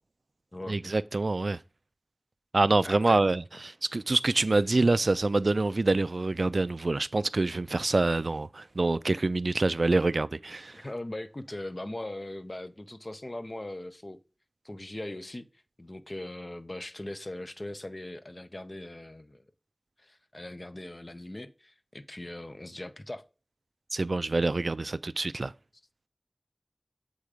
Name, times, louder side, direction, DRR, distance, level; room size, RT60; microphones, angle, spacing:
voice 1, 0.7-1.6 2.5-10.8 23.9-25.5, right 2 dB, 85° right, 0.3 m, -26 dB
voice 2, 2.8-3.2 3.8-3.9 10.7-14.2 14.6-15.5 15.8-19.4 20.0-23.2, left 1 dB, 45° left, 0.7 m, -40 dB
8.3 x 3.7 x 4.9 m
wide cardioid pair, 50°, 0 cm